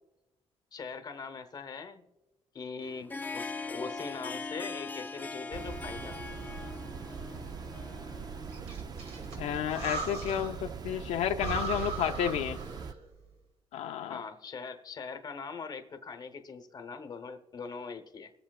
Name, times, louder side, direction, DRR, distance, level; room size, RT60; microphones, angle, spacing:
voice 1, 0.7-2.0 2.5-6.4 14.1-18.3, left 5 dB, 40° left, 7 dB, 1.0 m, -42 dB
Harp, 2.8-10.6, left 4 dB, 15° left, 0.4 m, -42 dB
sound 1, 5.5-12.9, right 6 dB, 40° right, 0.5 m, -42 dB
Breathing, 8.5-10.7 11.0-11.1 11.4-13.1, right 4 dB, 75° right, 2.5 m, -38 dB
voice 2, 9.4-12.6 13.7-14.2, left 9 dB, 80° left, 5 dB, 0.5 m, -31 dB
22.5 x 7.7 x 2.4 m, 1.0 s
cardioid pair, 105°, 11 cm